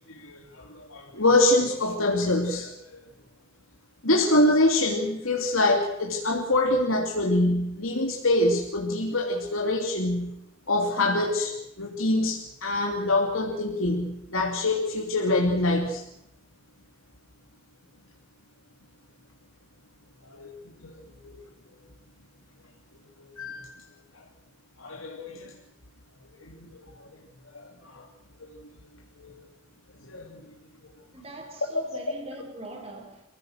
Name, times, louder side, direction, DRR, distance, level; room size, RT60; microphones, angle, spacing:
voice 1, 0.1-2.7 4.0-10.3 10.7-16.0 20.2-20.5 20.8-20.9 21.2-21.3 23.2-23.7 24.8-25.5 26.4-26.7 27.0-27.1 27.8-28.0 29.2-29.3 30.0-30.4, left 2 dB, 85° left, 3.1 m, -25 dB
voice 2, 31.1-33.2, right 1 dB, 30° right, 4.6 m, -42 dB
29.5 x 16.5 x 6.6 m
head